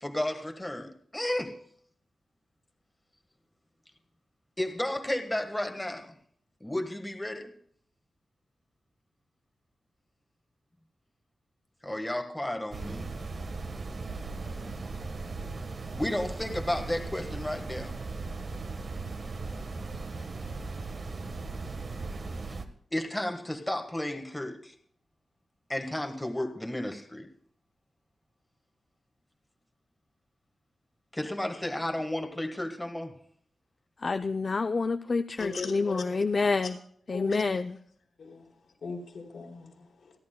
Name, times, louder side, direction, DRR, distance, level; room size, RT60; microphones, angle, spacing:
voice 1, 0.0-1.6 4.6-6.1 6.6-7.5 11.8-13.1 16.0-17.9 22.5-22.6 22.9-24.7 25.7-27.3 31.1-33.1 35.3-35.4, left 1 dB, 10° left, 1.4 m, -33 dB
sound 1, 12.7-22.7, right 3 dB, 55° right, 1.2 m, -37 dB
voice 2, 34.0-36.8 37.1-37.8, left 4 dB, 40° left, 0.4 m, -28 dB
voice 3, 35.4-36.0 36.6-36.7 37.1-37.5 38.2-38.5 38.8-40.1, left 4 dB, 80° left, 3.6 m, -38 dB
28.5 x 11.0 x 2.2 m
wide cardioid pair, 115°, 0 cm